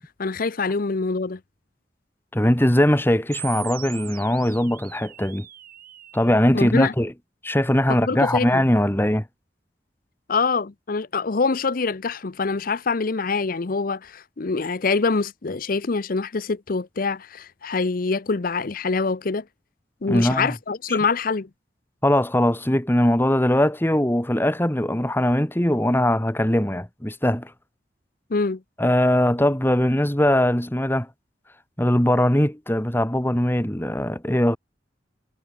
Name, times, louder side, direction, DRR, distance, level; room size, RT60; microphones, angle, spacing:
voice 1, 0.2-1.4 6.5-6.9 8.0-8.6 10.3-19.4 20.0-21.5 28.3-28.6, left 4 dB, 50° left, 0.7 m, -25 dB
voice 2, 2.3-5.5 6.1-7.1 7.4-9.2 20.1-20.5 20.9-21.0 22.0-27.5 28.8-31.1 31.8-34.6, left 1 dB, 10° left, 1.8 m, -21 dB
sound 1, 3.3-6.3, right 13 dB, 55° right, 2.3 m, -40 dB
head